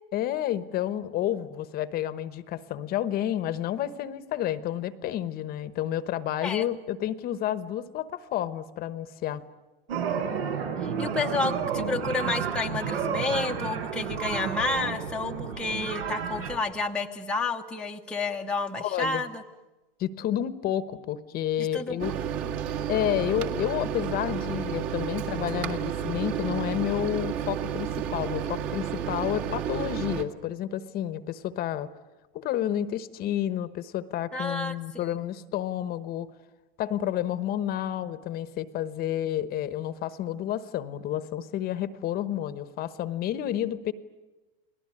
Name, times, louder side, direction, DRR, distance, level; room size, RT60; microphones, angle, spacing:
voice 1, 0.1-9.4 18.8-19.2 20.0-22.1 22.9-31.9 32.3-36.3 36.8-43.9, left 11 dB, 30° left, 13 dB, 1.1 m, -30 dB
sound 1, 9.9-16.6, right 7 dB, 85° right, 5.2 m, -31 dB
voice 2, 10.8-19.4 21.6-22.0 34.3-35.2, left 3 dB, 5° left, 1 dB, 0.9 m, -30 dB
Microwave oven, 22.0-30.2, right 9 dB, 45° right, 2.1 m, -31 dB
30.0 x 19.5 x 9.8 m, 1.1 s
supercardioid pair, 150°, 29 cm